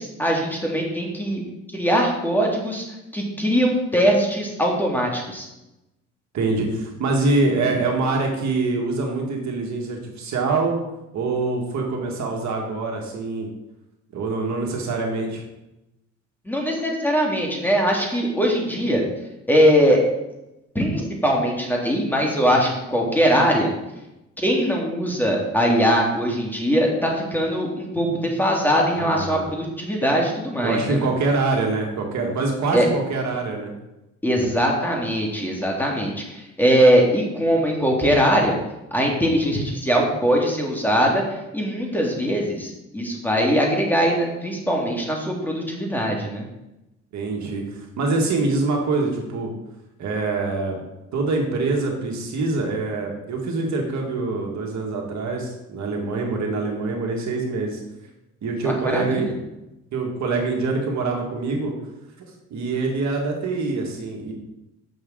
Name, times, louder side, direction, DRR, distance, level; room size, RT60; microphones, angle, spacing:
voice 1, 0.0-1.4 1.7-2.8 3.1-5.5 16.5-19.0 19.5-20.0 20.8-23.7 24.4-31.0 32.7-32.9 34.2-38.6 38.9-41.2 41.5-46.4 58.6-59.3, equal, 5° left, -1 dB, 2.0 m, -21 dB
voice 2, 6.3-10.8 11.1-13.5 14.1-15.4 28.9-29.5 30.6-33.7 47.1-49.5 50.0-50.8 51.1-57.8 58.4-59.3 59.9-61.7 62.5-64.3, right 3 dB, 65° right, 1 dB, 1.8 m, -24 dB
7.9 x 6.5 x 3.8 m, 0.94 s
cardioid pair, 90°, 30 cm